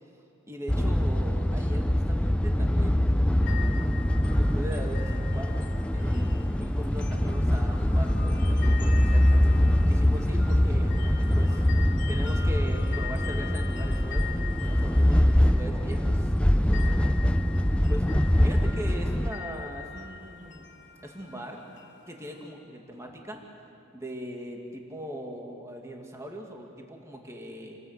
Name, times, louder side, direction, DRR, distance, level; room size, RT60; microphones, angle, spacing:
voice 1, 0.5-3.7 4.3-9.4 9.9-10.9 11.3-11.6 12.1-14.3 14.6-17.2 17.9-18.1 18.4-20.6 21.0-21.6 22.1-23.4 23.9-27.8, equal, 15° right, 1 dB, 2.2 m, -40 dB
sound 1, 0.7-19.3, left 1 dB, 5° left, 0.5 m, -23 dB
sound 2, 3.4-22.5, left 9 dB, 55° left, 2.9 m, -44 dB
28.5 x 20.5 x 8.1 m, 2.5 s
head